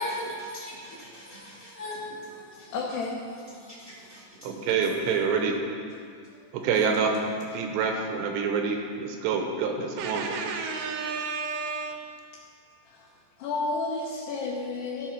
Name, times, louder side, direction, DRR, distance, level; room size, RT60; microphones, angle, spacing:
voice 1, 0.0-2.7 3.6-4.7 6.8-6.9, left 1 dB, 20° right, -10 dB, 1.7 m, -38 dB
voice 2, 2.7-3.2 6.3-6.4 7.1-7.3 12.9-13.1 13.4-15.1, left 3 dB, 75° left, -4 dB, 2.9 m, -31 dB
voice 3, 4.4-5.5 6.6-7.1 7.5-12.0, right 5 dB, 80° right, 3 dB, 3.0 m, -27 dB
14.0 x 5.5 x 6.0 m, 2.3 s
omnidirectional pair, 5.1 m